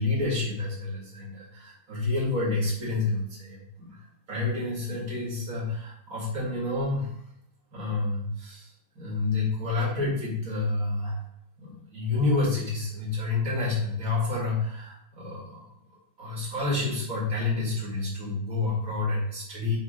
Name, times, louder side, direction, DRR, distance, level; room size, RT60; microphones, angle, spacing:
voice 1, 0.0-7.2 7.7-11.2 11.6-19.7, left 3 dB, 75° right, -5 dB, 0.7 m, -29 dB
9.8 x 3.4 x 5.0 m, 0.71 s
omnidirectional pair, 5.2 m